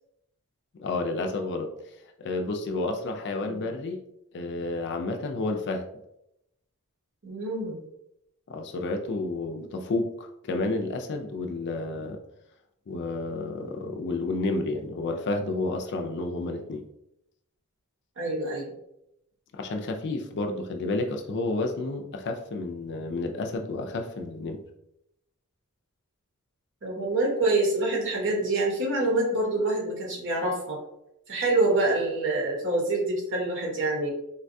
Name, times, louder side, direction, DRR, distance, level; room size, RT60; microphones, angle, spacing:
voice 1, 0.7-1.7 2.2-4.0 4.3-5.9 8.5-12.2 12.9-16.9 19.5-24.6, left 2 dB, 50° left, 5 dB, 0.4 m, -30 dB
voice 2, 7.2-7.8 18.2-18.7 26.8-30.8 31.3-34.1, right 2 dB, 55° right, -1 dB, 0.9 m, -26 dB
3.9 x 2.2 x 2.6 m, 0.82 s
head